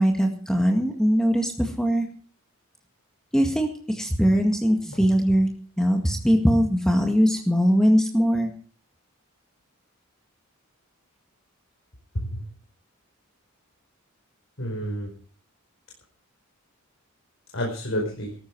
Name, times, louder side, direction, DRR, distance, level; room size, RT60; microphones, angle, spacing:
voice 1, 0.0-2.1 3.3-5.5 5.8-8.5, equal, 5° left, 2 dB, 1.9 m, -21 dB
voice 2, 4.9-5.4 12.1-12.4 14.6-15.1 17.5-18.4, equal, 65° left, 0 dB, 4.7 m, -30 dB
18.0 x 14.0 x 4.7 m, 0.42 s
head